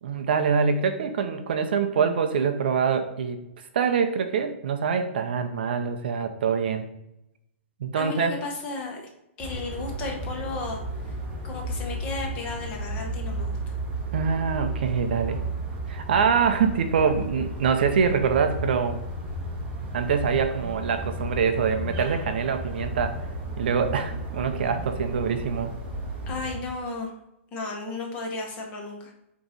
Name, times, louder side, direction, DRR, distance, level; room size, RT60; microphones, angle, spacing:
voice 1, 0.0-3.4 3.7-6.8 7.8-8.3 14.1-15.4 15.9-19.0 19.9-23.2 23.6-25.7, right 6 dB, 45° right, 7 dB, 0.6 m, -24 dB
voice 2, 8.0-9.0 9.4-11.1 11.4-13.7 26.3-27.1 27.5-29.1, left 3 dB, 15° left, 1 dB, 0.9 m, -34 dB
sound 1, 9.4-26.6, right 1 dB, 10° right, 0.9 m, -33 dB
7.9 x 3.1 x 4.0 m, 0.84 s
hypercardioid pair, 180°, 7 cm